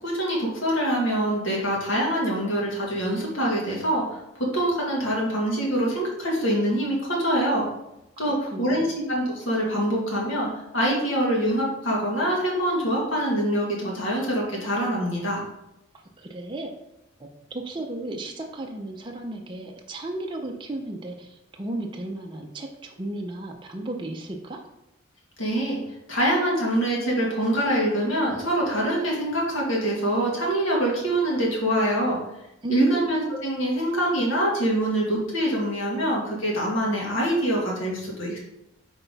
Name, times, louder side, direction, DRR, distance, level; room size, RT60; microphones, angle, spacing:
voice 1, 0.0-7.7 8.2-10.5 10.7-15.4 25.4-25.8 26.1-32.2 32.7-38.4, right 1 dB, 70° left, -3 dB, 1.9 m, -24 dB
voice 2, 8.3-8.9 15.9-16.7 17.2-24.6 32.6-33.0, right 2 dB, 25° right, 1 dB, 0.5 m, -34 dB
5.9 x 4.5 x 4.0 m, 0.88 s
head